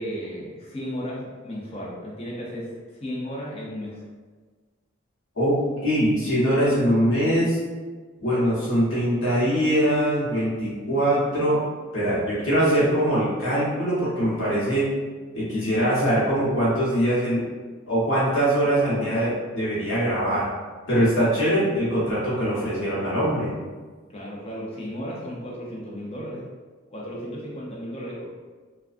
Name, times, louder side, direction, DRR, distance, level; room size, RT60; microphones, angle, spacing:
voice 1, 0.0-2.7 3.0-4.0 24.1-26.5 26.9-28.3, equal, 30° left, -4 dB, 0.6 m, -34 dB
voice 2, 5.4-7.6 8.2-11.6 11.9-14.9 15.3-17.4 17.9-20.5 20.9-23.5, equal, 75° left, -8 dB, 0.9 m, -22 dB
2.3 x 2.2 x 2.4 m, 1.4 s
head